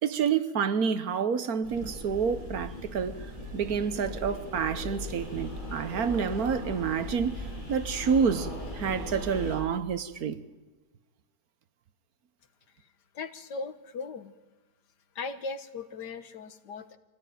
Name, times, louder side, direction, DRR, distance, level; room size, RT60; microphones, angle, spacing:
voice 1, 0.0-3.3 3.5-10.4, right 6 dB, 65° right, 1.5 m, -28 dB
sound 1, 1.6-9.6, left 1 dB, 25° left, 7.7 m, -38 dB
voice 2, 12.8-14.3 15.2-17.0, left 4 dB, 90° left, 1.9 m, -38 dB
25.0 x 17.0 x 9.2 m
omnidirectional pair, 1.8 m